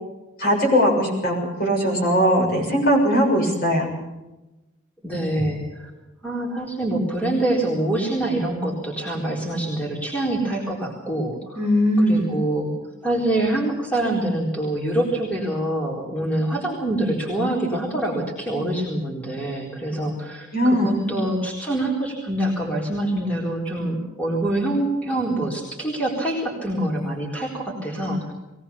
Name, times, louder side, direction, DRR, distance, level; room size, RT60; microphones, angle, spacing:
voice 1, 0.4-1.3 1.6-3.9 11.5-12.4 20.5-21.2, equal, 45° left, 0 dB, 6.9 m, -19 dB
voice 2, 5.0-5.9 6.2-11.7 12.0-12.7 13.0-28.3, right 1 dB, 5° left, -2 dB, 4.0 m, -25 dB
21.5 x 18.5 x 7.1 m, 1.0 s
head